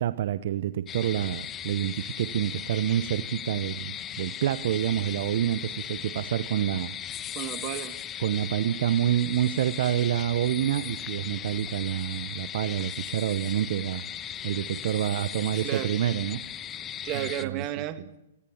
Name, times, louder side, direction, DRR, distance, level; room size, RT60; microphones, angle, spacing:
voice 1, 0.0-6.9 8.2-14.1 14.4-16.4 17.1-17.6 18.0-18.1, right 11 dB, 60° right, 0.9 m, -28 dB
sound 1, 0.9-17.5, left 10 dB, 20° left, 1.2 m, -37 dB
voice 2, 7.4-8.0 15.5-15.9 17.0-18.2, right 13 dB, 35° right, 1.9 m, -33 dB
26.5 x 17.0 x 7.2 m
hypercardioid pair, 135°, 0 cm